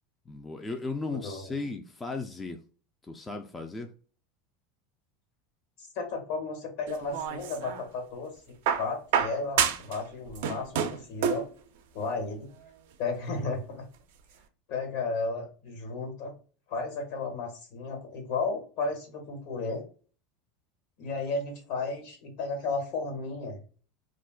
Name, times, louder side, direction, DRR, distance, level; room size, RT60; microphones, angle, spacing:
voice 1, 0.3-2.6 3.1-3.9, left 3 dB, 15° left, 4 dB, 0.3 m, -36 dB
voice 2, 1.2-1.5 5.8-8.4 8.8-11.5 11.9-12.5 13.0-13.8 14.7-16.3 16.7-19.8 21.0-23.6, left 3 dB, 65° left, 2 dB, 1.3 m, -33 dB
sound 1, 6.9-7.9 8.7-10.0 10.3-11.5 12.6-12.7, right 8 dB, 75° right, 0.4 m, -28 dB
2.4 x 2.1 x 3.6 m, 0.39 s
supercardioid pair, 110°, 0 cm